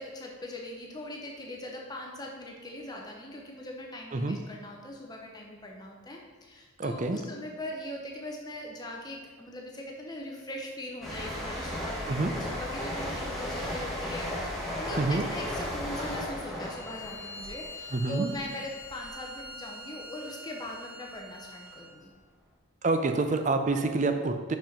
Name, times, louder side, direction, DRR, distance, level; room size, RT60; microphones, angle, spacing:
voice 1, 0.0-22.1, left 1 dB, 20° left, 0 dB, 0.7 m, -41 dB
voice 2, 6.8-7.2 12.1-12.3 15.0-15.3 17.9-18.3 22.8-24.6, right 3 dB, 35° right, 7 dB, 0.5 m, -27 dB
sound 1, 11.0-18.5 18.8-19.1, left 1 dB, ahead, 1.3 m, -35 dB
Bowed string instrument, 16.6-22.0, left 1 dB, 45° left, 1.1 m, -45 dB
5.6 x 5.2 x 5.1 m, 1.4 s
head